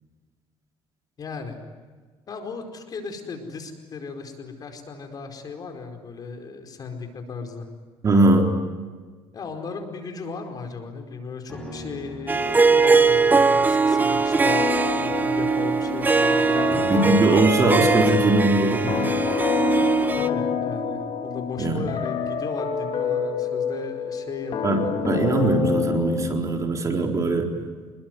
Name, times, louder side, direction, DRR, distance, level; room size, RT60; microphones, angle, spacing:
voice 1, 1.2-1.5 2.3-7.7 9.3-17.1 20.2-24.9, left 4 dB, 40° left, 5 dB, 4.8 m, -36 dB
voice 2, 8.0-8.5 16.7-19.1 21.6-21.9 24.6-27.5, right 2 dB, 35° right, 3 dB, 4.1 m, -21 dB
sound 1, 11.5-20.9 21.2-21.3, left 1 dB, 5° left, 7.9 m, -46 dB
Harp, 12.3-20.3, right 4 dB, 20° right, 1.3 m, -21 dB
sound 2, 14.5-26.9, left 6 dB, 60° left, 4.2 m, -28 dB
27.5 x 21.5 x 9.5 m, 1.4 s
cardioid pair, 120°, 10 cm